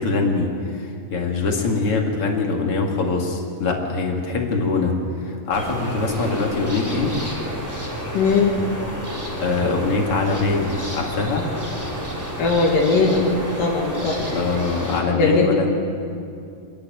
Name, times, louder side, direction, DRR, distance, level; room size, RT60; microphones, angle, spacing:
voice 1, 0.0-4.9 5.2-7.1 9.4-11.5 14.3-15.8, left 3 dB, 45° left, 1 dB, 2.8 m, -23 dB
sound 1, 5.5-15.0, equal, 5° right, 2.8 m, -30 dB
voice 2, 8.1-8.5 12.4-13.2 13.6-14.4 15.2-15.5, left 4 dB, 80° left, -2 dB, 3.6 m, -19 dB
27.5 x 10.5 x 9.2 m, 2.4 s
omnidirectional pair, 3.9 m